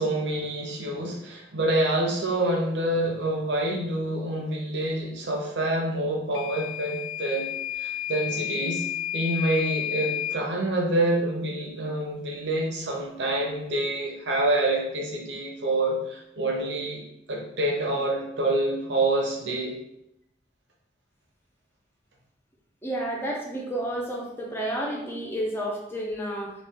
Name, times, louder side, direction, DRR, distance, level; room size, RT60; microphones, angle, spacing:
voice 1, 0.0-7.4 7.8-8.8 9.1-17.0 17.3-19.7, right 1 dB, 85° right, -1 dB, 0.8 m, -27 dB
Microwave oven / Alarm, 6.3-10.4, left 12 dB, 80° left, 0.3 m, -31 dB
voice 2, 22.8-26.5, right 1 dB, 15° left, -2 dB, 0.6 m, -31 dB
3.1 x 2.4 x 3.5 m, 0.82 s
head